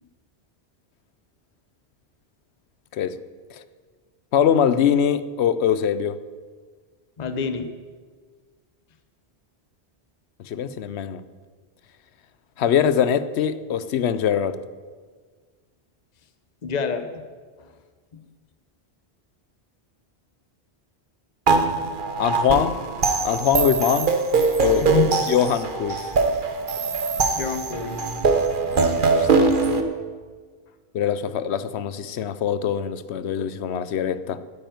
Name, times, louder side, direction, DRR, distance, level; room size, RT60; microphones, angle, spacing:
voice 1, 4.3-6.2 10.4-11.2 12.6-14.6 22.2-22.8 23.2-24.2 24.6-24.9 25.3-26.1 28.7-29.5 30.9-34.4, left 8 dB, 80° left, 1.0 m, -23 dB
voice 2, 7.2-7.7 16.6-17.1 17.6-17.7 18.1-18.2 24.8-25.2 27.3-28.0, left 6 dB, 40° left, 0.9 m, -27 dB
sound 1, 21.5-29.8, right 4 dB, 50° right, 1.2 m, -22 dB
9.9 x 9.2 x 9.2 m
omnidirectional pair, 1.1 m